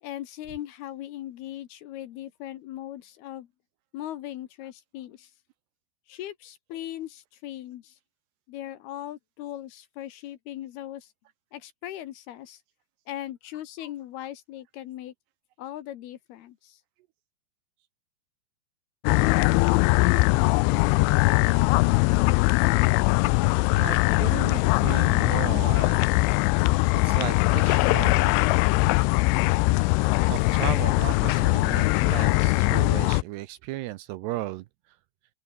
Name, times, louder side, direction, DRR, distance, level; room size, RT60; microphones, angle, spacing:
voice 1, 0.0-3.5 3.9-5.3 6.1-8.0 8.5-11.1 11.5-12.6 13.1-15.1 15.6-16.8, left 13 dB, 70° left, 2.8 m, -39 dB
sound 1, 19.1-33.2, left 24 dB, 90° left, 3.0 m, -21 dB
voice 2, 23.7-26.0 27.0-28.4 30.3-34.7, right 16 dB, 80° right, 2.6 m, -35 dB
open air
omnidirectional pair, 5.3 m